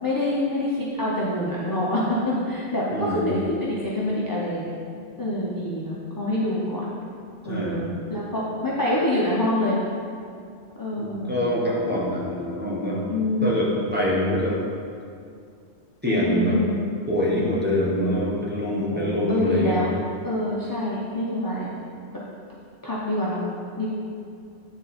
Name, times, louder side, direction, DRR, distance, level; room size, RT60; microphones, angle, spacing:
voice 1, 0.0-4.8 5.2-6.8 7.4-9.8 10.8-11.5 13.1-13.8 16.1-16.9 18.7-19.9 20.2-21.7 22.8-23.4 23.8-23.9, left 1 dB, 20° left, -7 dB, 0.8 m, -26 dB
voice 2, 2.9-3.2 7.5-7.8 11.0-13.0 13.4-14.6 16.0-16.6 17.1-19.8, left 1 dB, 10° right, -6 dB, 1.3 m, -25 dB
9.9 x 4.1 x 4.3 m, 2.4 s
omnidirectional pair, 1.2 m